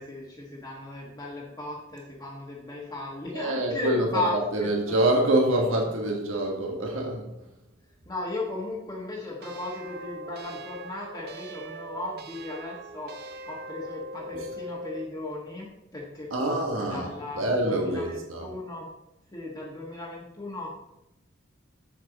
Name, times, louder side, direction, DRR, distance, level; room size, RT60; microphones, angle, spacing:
voice 1, 0.0-4.9 8.0-18.9 19.3-20.8, left 2 dB, 20° left, -5 dB, 1.4 m, -36 dB
voice 2, 3.3-7.3 16.3-17.1 17.4-18.5, right 1 dB, 85° right, 1 dB, 1.5 m, -26 dB
sound 1, 9.4-15.1, right 1 dB, 50° right, 0.6 m, -41 dB
7.7 x 7.6 x 4.0 m, 0.87 s
head